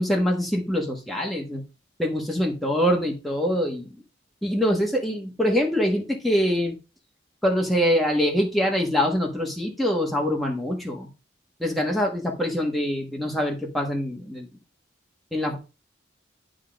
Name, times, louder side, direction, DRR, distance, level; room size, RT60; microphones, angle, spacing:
voice 1, 0.0-1.6 2.0-3.9 4.4-6.7 7.4-11.1 11.6-14.5 15.3-15.6, equal, ahead, -1 dB, 1.3 m, -24 dB
11.0 x 3.7 x 5.1 m, 0.30 s
head